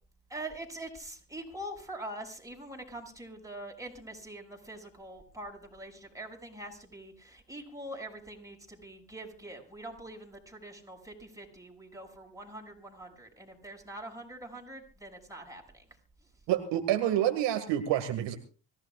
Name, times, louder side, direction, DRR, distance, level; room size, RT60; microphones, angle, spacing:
voice 1, 0.3-15.9, right 1 dB, 5° right, 2 dB, 6.3 m, -44 dB
voice 2, 16.5-18.4, right 12 dB, 65° right, 6 dB, 2.0 m, -28 dB
25.0 x 16.0 x 2.4 m, 0.37 s
hypercardioid pair, 65°, 46 cm